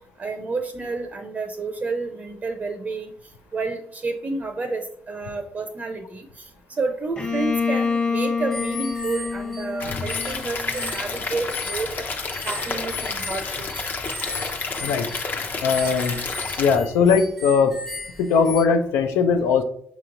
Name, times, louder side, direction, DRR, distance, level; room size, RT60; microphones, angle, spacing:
voice 1, 0.2-3.1 3.5-6.5 6.8-11.9 12.4-13.7, right 3 dB, 35° right, 6 dB, 0.5 m, -30 dB
Bowed string instrument, 7.2-10.9, left 5 dB, 25° left, 1.0 m, -27 dB
sound 1, 8.5-18.6, left 3 dB, 5° left, 0.7 m, -36 dB
Stream / Liquid, 9.8-16.8, left 4 dB, 45° left, 0.7 m, -30 dB
voice 2, 15.6-16.2 16.6-17.7 18.2-19.6, left 5 dB, 90° left, 9 dB, 0.5 m, -19 dB
5.6 x 3.0 x 2.5 m, 0.67 s
supercardioid pair, 75°, 4 cm